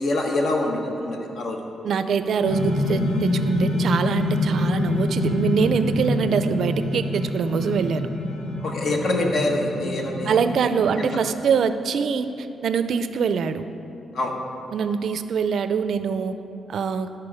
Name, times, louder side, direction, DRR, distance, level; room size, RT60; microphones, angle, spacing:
voice 1, 0.0-1.6 8.6-10.4 11.0-11.1 14.1-14.3, left 2 dB, 65° left, 1 dB, 1.2 m, -25 dB
voice 2, 1.8-8.1 10.3-13.6 14.7-16.4 16.7-17.1, right 6 dB, 65° right, 11 dB, 0.4 m, -24 dB
sound 1, 2.4-11.1, left 2 dB, 85° left, 1.0 m, -26 dB
12.0 x 4.5 x 4.8 m, 2.9 s
cardioid pair, 105°, 0 cm